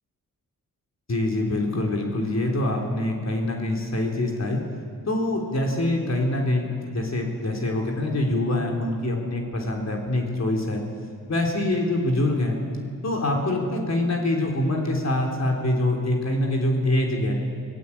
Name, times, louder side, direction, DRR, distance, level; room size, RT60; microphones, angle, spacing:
voice 1, 1.1-4.6 5.1-10.8 11.3-12.6 13.0-17.3, left 1 dB, 45° left, 1 dB, 3.7 m, -25 dB
28.5 x 18.5 x 8.5 m, 2.1 s
wide cardioid pair, 110°, 36 cm